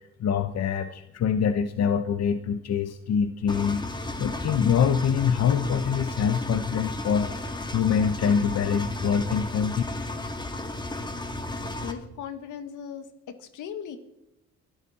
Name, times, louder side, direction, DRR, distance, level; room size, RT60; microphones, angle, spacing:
voice 1, 0.2-3.8 4.2-7.3 7.7-9.8, left 7 dB, 60° left, 9 dB, 1.0 m, -24 dB
Engine, 3.5-11.9, left 2 dB, 15° left, 1.8 m, -34 dB
voice 2, 11.8-14.0, left 8 dB, 80° left, 9 dB, 1.7 m, -38 dB
22.5 x 12.0 x 4.3 m, 0.88 s
cardioid pair, 90°, 30 cm